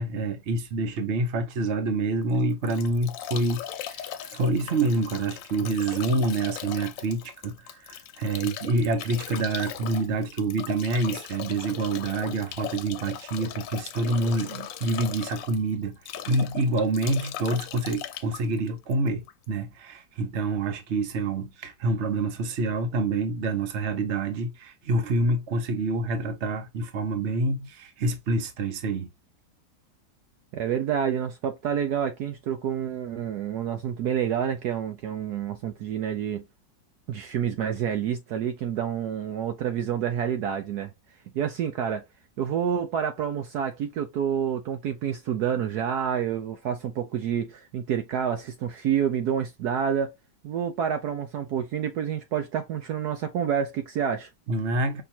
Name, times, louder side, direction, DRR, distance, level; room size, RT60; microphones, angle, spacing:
voice 1, 0.0-16.0 16.3-29.1 54.5-55.0, right 2 dB, 45° right, 1.1 m, -27 dB
Bathtub (filling or washing) / Drip / Trickle dribble, 2.2-19.4, left 10 dB, 90° left, 1.3 m, -39 dB
voice 2, 30.5-36.4 37.1-40.9 41.3-42.0 42.4-50.1 50.4-54.3, right 8 dB, 65° right, 1.2 m, -28 dB
5.7 x 3.1 x 2.8 m
omnidirectional pair, 1.9 m